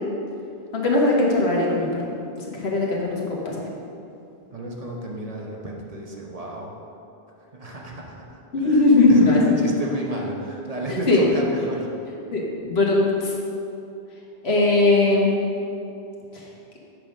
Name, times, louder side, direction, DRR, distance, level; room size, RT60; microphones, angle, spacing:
voice 1, 0.7-2.0 2.5-3.7 8.5-9.4 11.1-11.2 12.3-13.3 14.4-15.3, left 2 dB, 85° left, -3 dB, 1.6 m, -19 dB
voice 2, 4.5-6.7 7.5-8.8 9.1-11.9, right 2 dB, 40° right, -1 dB, 1.0 m, -32 dB
7.7 x 5.6 x 5.2 m, 2.8 s
omnidirectional pair, 1.0 m